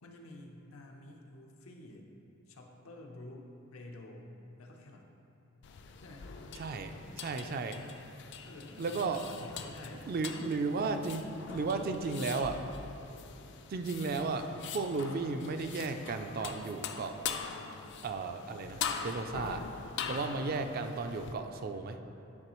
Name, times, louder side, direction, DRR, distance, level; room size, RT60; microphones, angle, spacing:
voice 1, 0.0-2.1 2.5-4.3 4.6-5.1 6.0-6.3 8.4-10.1 11.4-11.5 20.0-20.8, left 1 dB, 90° left, 1 dB, 0.7 m, -50 dB
sound 1, 5.6-21.3, left 6 dB, 55° left, 0.4 m, -43 dB
voice 2, 6.6-7.8 8.8-9.2 10.1-11.3 11.5-12.6 13.7-17.2 18.0-19.7 20.1-22.0, right 4 dB, 45° right, 7 dB, 0.3 m, -34 dB
9.6 x 4.0 x 3.0 m, 3.0 s
head